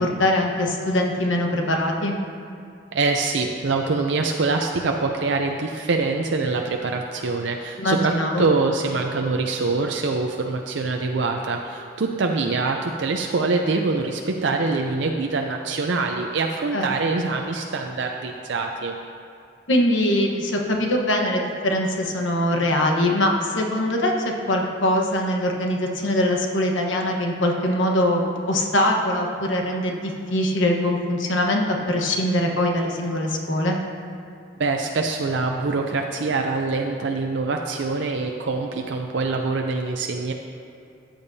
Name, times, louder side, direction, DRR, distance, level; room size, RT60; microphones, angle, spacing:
voice 1, 0.0-2.2 7.8-8.5 16.7-16.9 19.7-24.1 24.5-33.8, left 1 dB, 80° left, 1 dB, 1.2 m, -22 dB
voice 2, 2.9-8.1 8.4-19.0 34.6-40.3, right 3 dB, 70° right, 2 dB, 0.5 m, -24 dB
14.0 x 8.8 x 2.7 m, 2.6 s
head